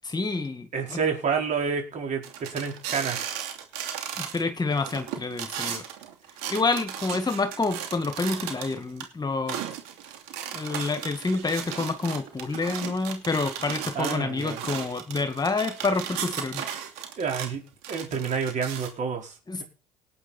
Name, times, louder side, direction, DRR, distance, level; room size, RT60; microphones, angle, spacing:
voice 1, 0.0-1.0 4.2-5.8 6.5-9.6 10.5-16.6 19.5-19.6, left 3 dB, 25° left, 8 dB, 2.0 m, -28 dB
voice 2, 0.7-3.3 13.9-14.6 17.2-17.6 17.9-19.3, right 6 dB, 45° right, 2 dB, 4.9 m, -29 dB
sound 1, 2.2-4.4 4.7-9.0 9.5-17.5 17.8-18.9, right 9 dB, 70° right, 2.8 m, -35 dB
18.5 x 9.2 x 4.4 m, 0.34 s
hypercardioid pair, 70°, 17 cm